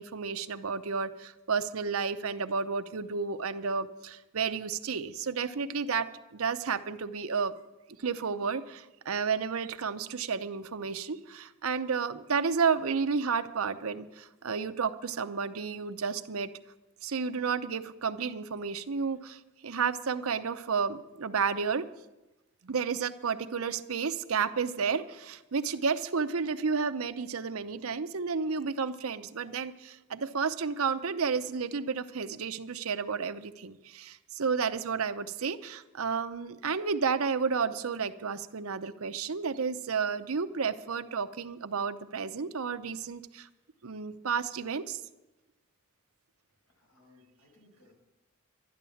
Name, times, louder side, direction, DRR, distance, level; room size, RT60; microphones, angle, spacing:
voice 1, 0.0-6.1 6.3-7.5 8.0-16.5 17.0-21.9 22.6-43.5 43.8-45.0, right 5 dB, 85° right, 10 dB, 0.7 m, -31 dB
voice 2, 46.7-47.9, left 2 dB, 85° left, -1 dB, 6.0 m, -62 dB
12.0 x 10.5 x 7.1 m, 1.0 s
head